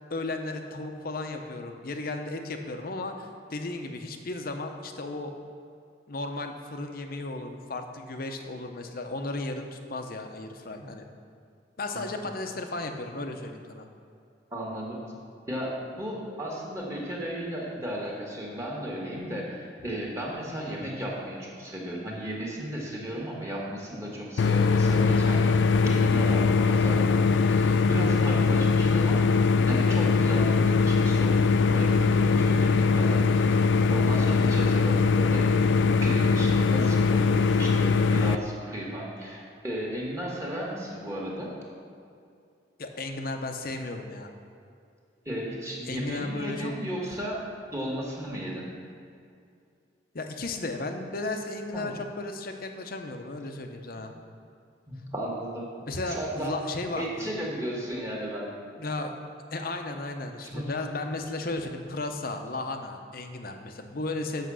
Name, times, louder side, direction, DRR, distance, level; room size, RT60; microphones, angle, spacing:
voice 1, 0.1-5.3 6.1-11.1 11.8-13.9 42.8-44.3 45.8-46.7 50.1-54.1 55.9-57.3 58.8-59.1 59.5-64.5, left 2 dB, 50° left, 5 dB, 0.8 m, -34 dB
voice 2, 14.5-15.0 15.5-29.3 29.7-35.5 36.0-41.5 45.3-47.4 47.7-48.7 51.7-51.9 54.9-55.7 56.1-56.5 57.0-58.5 60.4-60.7, equal, 15° right, -3 dB, 1.7 m, -35 dB
sound 1, 24.4-38.4, left 4 dB, 75° left, 0.4 m, -22 dB
8.2 x 6.6 x 6.3 m, 2.4 s
head